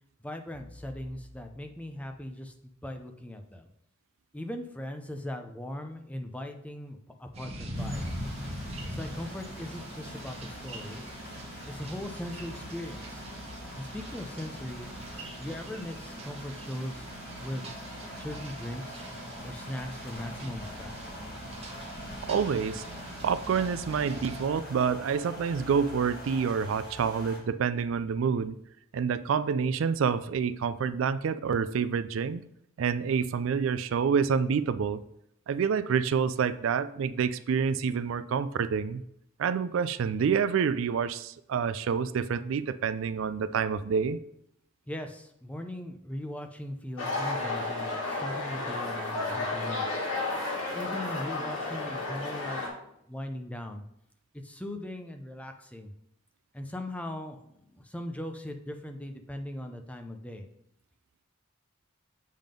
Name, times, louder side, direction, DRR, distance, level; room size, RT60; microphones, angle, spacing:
voice 1, 0.2-3.7 4.3-8.0 8.8-11.0 11.7-13.2 13.8-14.9 15.3-17.1 17.4-17.6 18.2-19.1 19.4-20.9 44.9-49.9 50.7-53.8 54.3-55.9 56.5-57.5 57.7-60.5, left 1 dB, 5° left, 5 dB, 0.5 m, -39 dB
sound 1, 7.3-24.5, equal, 30° right, 1.1 m, -42 dB
sound 2, 7.7-27.4, equal, 50° left, 2.2 m, -45 dB
voice 2, 22.3-22.8 23.2-28.6 28.9-32.4 32.8-35.0 35.5-39.0 39.4-44.2, right 6 dB, 70° right, 14 dB, 0.3 m, -28 dB
sound 3, 47.0-52.7, left 2 dB, 90° left, 1.9 m, -32 dB
7.5 x 3.6 x 5.1 m, 0.74 s
head